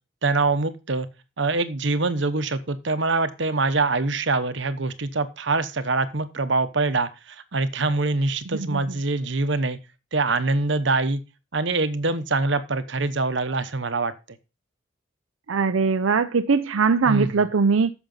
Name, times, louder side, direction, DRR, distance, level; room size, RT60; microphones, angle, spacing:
voice 1, 0.2-1.1 1.4-9.8 10.1-11.2 11.5-14.4 17.1-17.5, right 3 dB, 65° right, 1.0 m, -24 dB
voice 2, 15.5-17.9, right 5 dB, 85° right, 0.6 m, -21 dB
9.0 x 7.1 x 5.4 m
head